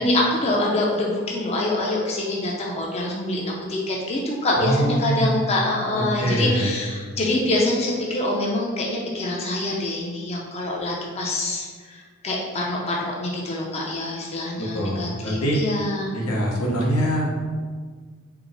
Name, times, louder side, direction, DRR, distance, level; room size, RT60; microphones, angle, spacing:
voice 1, 0.0-16.1, left 1 dB, 30° left, -2 dB, 0.5 m, -25 dB
voice 2, 4.6-5.4 5.9-6.7 14.6-15.6 16.1-17.3, equal, 90° left, -2 dB, 0.9 m, -23 dB
4.6 x 2.0 x 3.8 m, 1.5 s
head